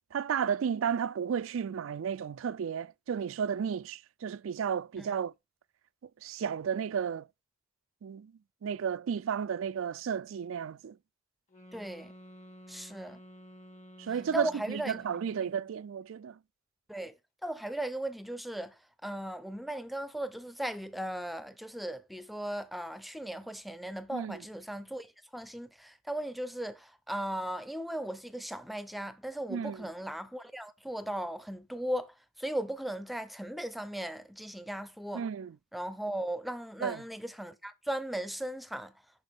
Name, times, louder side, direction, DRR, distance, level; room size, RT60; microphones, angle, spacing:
voice 1, 0.1-5.3 6.2-7.3 8.0-8.3 8.6-11.0 14.0-16.4 24.1-24.5 29.5-29.9 35.1-35.6 36.8-37.0, right 7 dB, 70° right, 0.4 m, -33 dB
sound 1, 11.5-15.7, equal, 35° left, 2.0 m, -52 dB
voice 2, 11.7-12.1 12.7-13.2 14.3-15.0 16.9-17.1 17.4-18.7 19.0-35.2 35.7-38.9, right 1 dB, ahead, 0.6 m, -37 dB
10.5 x 5.7 x 3.6 m
head